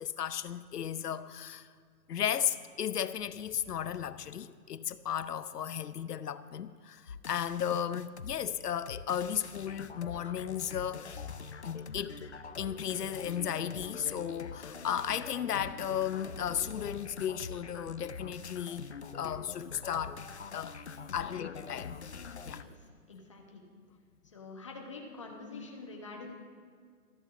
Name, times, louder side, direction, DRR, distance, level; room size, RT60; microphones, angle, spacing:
voice 1, 0.0-1.7 2.1-11.3 11.6-12.2 12.6-20.3 20.5-20.8 21.1-22.0 22.4-22.6, left 9 dB, 85° left, 0.8 m, -35 dB
sound 1, 7.1-8.4 8.9-22.6, left 5 dB, 50° left, 0.6 m, -44 dB
voice 2, 23.1-23.6 24.2-26.3, left 3 dB, 20° left, 1.0 m, -46 dB
13.5 x 8.1 x 6.9 m
hypercardioid pair, 180°, 46 cm